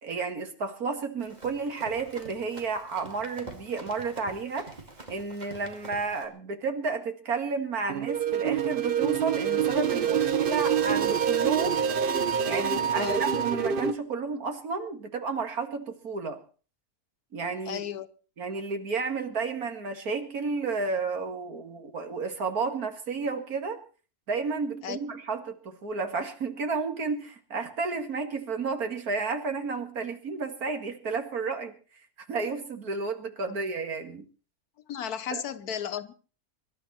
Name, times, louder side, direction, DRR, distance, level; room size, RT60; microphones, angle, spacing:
voice 1, 0.0-4.7 5.1-11.8 12.5-16.4 17.3-17.8 18.4-23.8 24.3-31.7 32.3-34.2 35.3-35.4, right 4 dB, 75° right, 2.4 m, -32 dB
Run, 1.2-6.2, right 2 dB, 30° right, 2.5 m, -46 dB
sound 1, 7.9-13.9, right 8 dB, 45° right, 0.9 m, -26 dB
voice 2, 17.7-18.1 24.8-25.0 33.5-33.6 34.9-36.1, left 9 dB, 85° left, 1.5 m, -34 dB
24.0 x 12.0 x 4.2 m
omnidirectional pair, 1.6 m